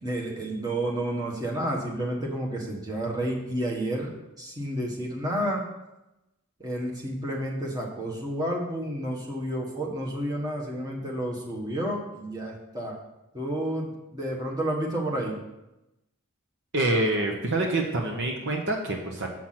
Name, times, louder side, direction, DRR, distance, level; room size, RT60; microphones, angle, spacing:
voice 1, 0.0-5.6 6.6-13.0 13.3-15.4, right 1 dB, 15° right, -2 dB, 1.4 m, -30 dB
voice 2, 16.7-19.3, right 2 dB, 55° right, 1 dB, 0.9 m, -26 dB
7.4 x 6.0 x 5.9 m, 0.95 s
head